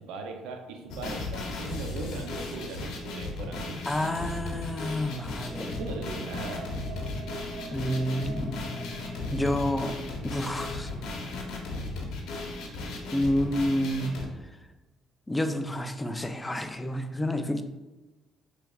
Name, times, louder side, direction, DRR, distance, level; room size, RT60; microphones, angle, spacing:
voice 1, 0.0-3.8 5.8-6.7, right 3 dB, 85° right, 4 dB, 0.5 m, -39 dB
sound 1, 0.9-14.2, left 3 dB, 75° left, 0.8 m, -36 dB
sound 2, 0.9-13.1, equal, 25° right, 0.7 m, -46 dB
voice 2, 3.9-5.8 7.7-8.6 9.3-10.0 10.2-10.9 13.1-14.1 15.3-17.6, left 1 dB, 15° left, 7 dB, 0.4 m, -29 dB
4.8 x 3.2 x 2.3 m, 1.2 s
supercardioid pair, 85°, 0 cm